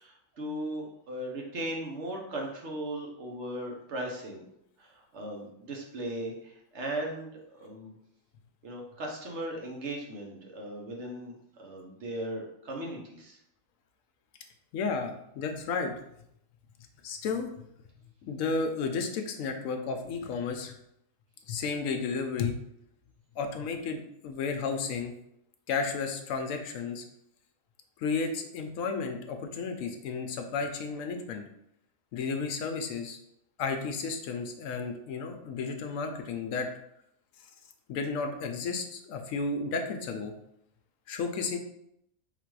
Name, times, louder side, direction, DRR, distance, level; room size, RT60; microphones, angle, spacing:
voice 1, 0.0-4.4 4.8-7.9 8.6-13.4, right 1 dB, 60° right, 0 dB, 1.1 m, -37 dB
voice 2, 14.7-15.9 17.0-17.5 18.3-20.8 21.5-22.6 23.4-25.1 25.7-27.0 28.0-31.4 32.1-33.2 33.6-36.7 37.9-40.3 41.1-41.6, left 4 dB, 75° left, 5 dB, 1.0 m, -32 dB
3.8 x 2.5 x 4.6 m, 0.76 s
omnidirectional pair, 1.5 m